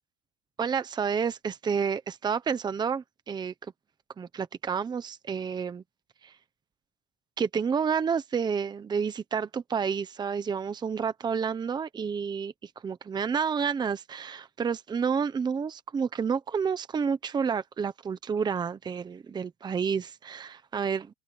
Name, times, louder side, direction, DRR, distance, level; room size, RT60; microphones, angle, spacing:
voice 1, 0.6-3.7 4.2-5.8 6.2-6.4 7.4-21.1, right 6 dB, 15° right, 1.0 m, -30 dB
open air
supercardioid pair, 150°, 31 cm